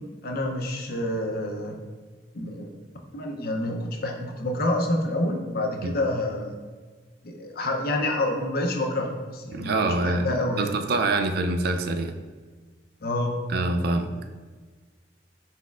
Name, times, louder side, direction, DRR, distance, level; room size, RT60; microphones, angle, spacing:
voice 1, 0.2-1.8 2.3-2.7 3.1-6.6 7.2-10.9 13.0-13.4, left 1 dB, 60° left, 2 dB, 0.6 m, -28 dB
voice 2, 9.5-12.1 13.5-14.1, right 2 dB, 60° right, 7 dB, 0.3 m, -25 dB
4.2 x 4.2 x 2.3 m, 1.4 s
head